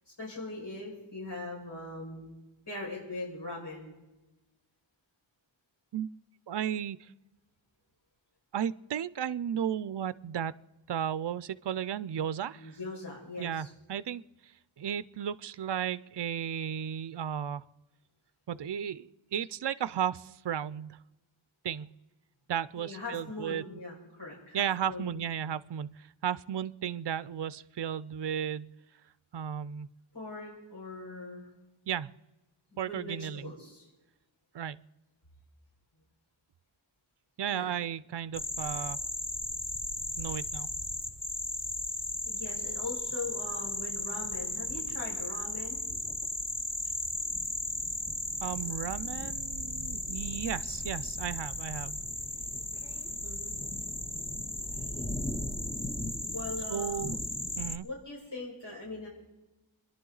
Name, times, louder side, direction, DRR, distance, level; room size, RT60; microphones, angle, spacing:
voice 1, 0.2-2.3 2.7-4.0 12.5-13.7 22.8-25.2 30.1-31.5 32.8-33.9 37.5-37.7 42.1-45.8 53.2-53.6 56.3-57.1 57.8-59.1, left 2 dB, 60° left, -5 dB, 5.7 m, -41 dB
voice 2, 6.5-7.1 8.5-10.5 10.9-12.8 13.4-14.5 14.8-17.6 18.5-21.0 21.6-21.9 22.5-23.6 24.5-28.7 29.3-29.9 31.9-32.1 32.8-33.5 34.5-34.8 37.4-39.0 40.2-40.7 48.4-51.9 56.7-57.2 57.6-57.9, right 9 dB, 60° right, 17 dB, 0.5 m, -34 dB
sound 1, 38.3-57.8, left 1 dB, 10° left, 0.8 m, -35 dB
27.5 x 11.0 x 3.9 m, 1.0 s
wide cardioid pair, 55°, 47 cm